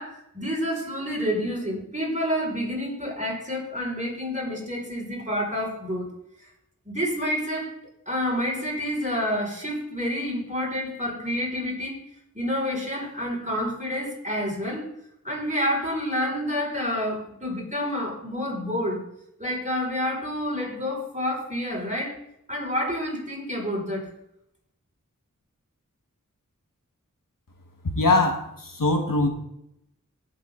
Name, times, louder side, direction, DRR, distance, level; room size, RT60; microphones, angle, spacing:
voice 1, 0.0-6.1 6.9-7.7 8.1-12.0 12.3-14.9 15.2-19.0 19.4-22.2 22.5-24.1, equal, 25° right, -2 dB, 5.5 m, -28 dB
voice 2, 27.9-29.3, left 2 dB, 90° left, 3 dB, 1.7 m, -22 dB
17.0 x 7.7 x 3.9 m, 0.78 s
wide cardioid pair, 40°, 32 cm